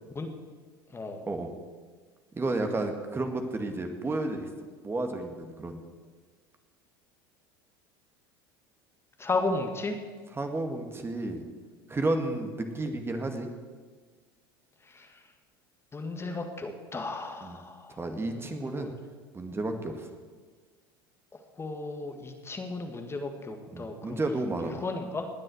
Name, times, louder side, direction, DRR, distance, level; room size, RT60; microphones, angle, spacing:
voice 1, 2.3-4.5 4.8-5.8 10.4-11.4 11.9-13.5 17.4-17.6 18.0-18.9 19.3-20.1 23.7-24.8, right 2 dB, 20° right, 5 dB, 2.1 m, -32 dB
voice 2, 9.2-10.0 14.9-15.1 15.9-18.9 21.6-24.2 24.6-25.3, left 3 dB, 20° left, 5 dB, 2.0 m, -34 dB
20.0 x 7.6 x 8.0 m, 1.5 s
hypercardioid pair, 80°, 12 cm